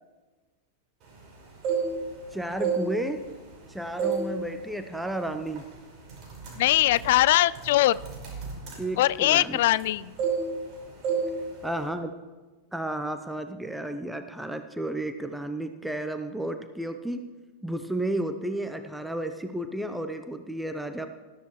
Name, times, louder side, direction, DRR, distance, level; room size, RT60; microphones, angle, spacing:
sound 1, 1.4-2.2 2.5-3.6 4.0-4.3 4.7-4.9 5.6-5.7 6.0-9.9 10.2-10.7 11.0-11.3 11.6-11.9, right 5 dB, 40° right, 4.9 m, -30 dB
voice 1, 2.3-3.3 3.7-5.7 8.8-9.6 11.6-12.1 12.7-17.3 17.6-21.1, right 1 dB, 5° right, 7 dB, 0.6 m, -32 dB
voice 2, 6.6-8.0 9.0-10.1, left 15 dB, 55° left, 19 dB, 0.3 m, -21 dB
20.0 x 13.0 x 3.1 m, 1.3 s
figure-of-eight pair, 90°, 0 cm